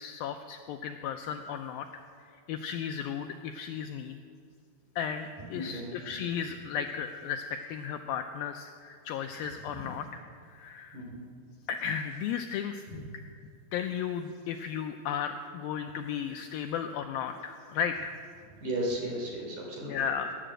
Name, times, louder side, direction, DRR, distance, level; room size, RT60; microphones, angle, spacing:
voice 1, 0.0-2.0 2.5-4.2 5.0-10.2 10.5-11.0 11.7-13.1 13.7-18.1 19.8-20.3, left 7 dB, 85° left, 6 dB, 2.1 m, -35 dB
voice 2, 5.5-5.9 9.7-9.8 10.9-11.2 12.9-13.1 18.6-19.9, right 1 dB, 50° right, -1 dB, 4.3 m, -35 dB
18.5 x 10.0 x 7.7 m, 2.2 s
omnidirectional pair, 4.8 m